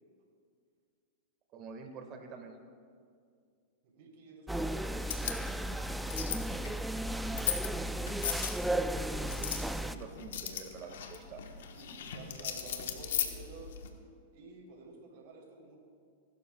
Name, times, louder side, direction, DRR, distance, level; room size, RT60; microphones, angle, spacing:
voice 1, 1.5-2.6 9.2-11.4, right 4 dB, 40° right, 5 dB, 1.8 m, -47 dB
voice 2, 3.8-5.1 11.6-13.8 14.3-15.8, right 3 dB, 60° right, -1 dB, 3.5 m, -51 dB
sound 1, 4.5-10.0, right 1 dB, 5° right, 0.4 m, -34 dB
sound 2, 4.9-13.9, left 8 dB, 80° left, 1.2 m, -39 dB
21.0 x 12.0 x 2.3 m, 2.2 s
hypercardioid pair, 120°, 0 cm